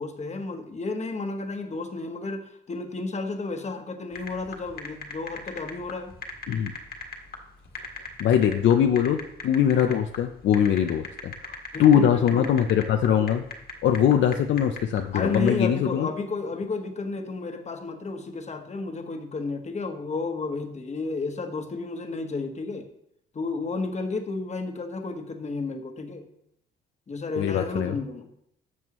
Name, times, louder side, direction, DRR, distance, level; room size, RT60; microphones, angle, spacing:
voice 1, 0.0-6.1 11.7-12.6 15.1-22.9 23.3-26.3 27.1-28.3, left 3 dB, 35° left, 5 dB, 1.3 m, -32 dB
sound 1, 4.1-15.7, left 4 dB, 50° left, 1.6 m, -38 dB
voice 2, 8.2-13.4 13.8-16.1 27.4-28.0, left 9 dB, 70° left, 5 dB, 0.6 m, -22 dB
12.5 x 7.2 x 3.1 m, 0.76 s
cardioid pair, 90°, 20 cm